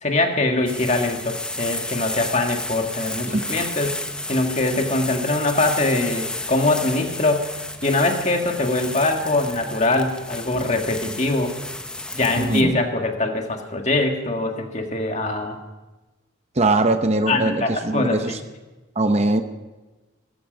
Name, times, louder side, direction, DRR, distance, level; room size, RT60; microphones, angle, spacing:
voice 1, 0.0-4.0 4.3-7.6 7.8-11.5 12.1-15.6 17.3-18.4, left 2 dB, 35° left, 4 dB, 1.7 m, -23 dB
sound 1, 0.7-12.6, left 2 dB, 5° left, 0.7 m, -32 dB
voice 2, 3.3-3.6 12.4-12.8 16.6-18.4 19.0-19.4, right 2 dB, 30° right, 8 dB, 0.8 m, -21 dB
19.5 x 13.5 x 5.2 m, 1.1 s
head